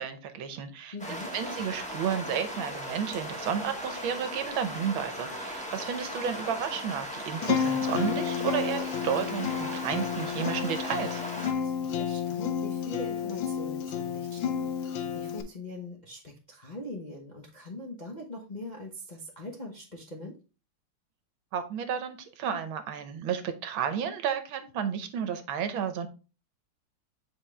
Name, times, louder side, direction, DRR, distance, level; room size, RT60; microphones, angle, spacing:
voice 1, 0.0-0.9 1.3-11.2 21.5-26.1, right 8 dB, 75° right, 9 dB, 1.5 m, -32 dB
voice 2, 0.9-1.3 11.6-20.4, left 1 dB, 40° left, -1 dB, 0.6 m, -42 dB
sound 1, 1.0-11.5, equal, 5° left, 0.9 m, -38 dB
Acoustic guitar, 7.4-15.4, left 8 dB, 75° left, 1.3 m, -31 dB
7.3 x 4.4 x 3.2 m, 0.32 s
omnidirectional pair, 2.4 m